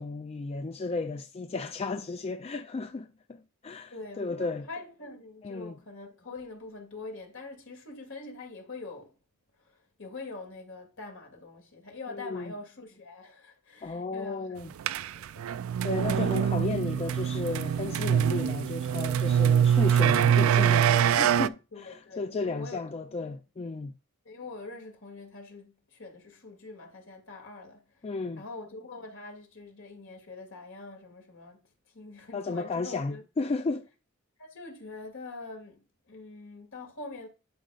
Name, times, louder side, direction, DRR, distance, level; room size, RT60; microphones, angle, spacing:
voice 1, 0.0-4.7 5.4-5.8 12.1-12.5 13.8-14.7 15.8-23.9 28.0-28.4 32.3-33.9, left 3 dB, 30° left, 0.4 m, -34 dB
voice 2, 3.9-9.1 9.6-14.7 15.0-15.6 21.7-22.8 24.2-28.1 28.4-31.6 31.9-33.2 34.4-37.3, left 3 dB, 65° left, 2.4 m, -44 dB
sound 1, 14.8-21.5, right 9 dB, 70° right, 0.3 m, -24 dB
11.5 x 5.1 x 2.4 m
head